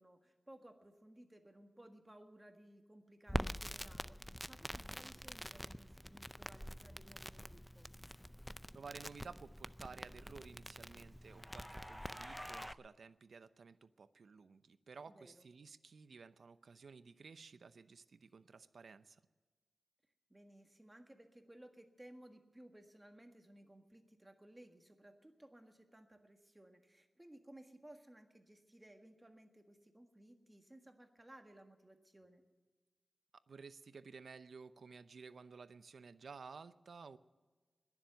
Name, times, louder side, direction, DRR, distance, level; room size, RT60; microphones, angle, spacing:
voice 1, 0.0-7.9 15.1-15.5 20.3-32.4, right 1 dB, 15° right, 5 dB, 1.6 m, -59 dB
Crackle, 3.3-12.7, equal, ahead, 0.4 m, -46 dB
voice 2, 8.7-19.2 33.5-37.2, right 5 dB, 85° right, 14 dB, 0.6 m, -54 dB
21.0 x 7.3 x 9.2 m, 1.3 s
wide cardioid pair, 115°, 0 cm